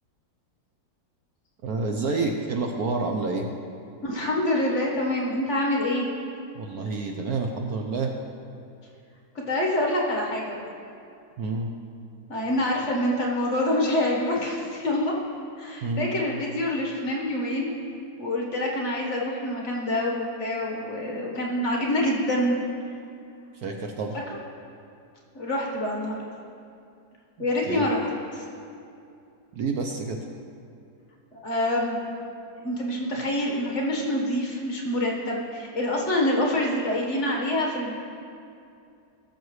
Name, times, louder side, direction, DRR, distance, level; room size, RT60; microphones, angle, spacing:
voice 1, 1.6-3.5 6.5-8.1 11.4-11.7 15.8-16.1 23.6-24.2 27.7-27.9 29.5-30.2, right 3 dB, 65° right, 2 dB, 1.1 m, -28 dB
voice 2, 4.0-6.1 9.5-10.7 12.3-15.1 15.6-17.7 18.2-22.6 25.3-26.2 27.4-28.4 31.3-32.0 32.6-37.9, left 1 dB, 45° left, -2 dB, 1.5 m, -26 dB
18.5 x 7.0 x 3.2 m, 2.6 s
omnidirectional pair, 2.0 m